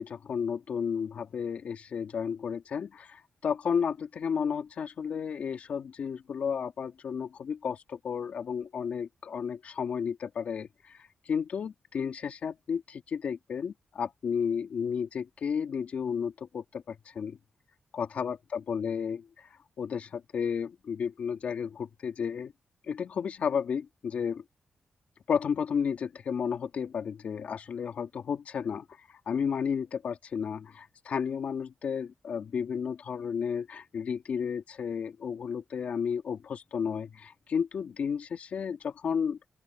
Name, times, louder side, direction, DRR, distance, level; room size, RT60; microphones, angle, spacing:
voice 1, 0.0-17.4 17.9-22.5 22.8-24.4 25.3-39.4, left 7 dB, 70° left, 2.5 m, -32 dB
open air
wide cardioid pair, 155°, 3 cm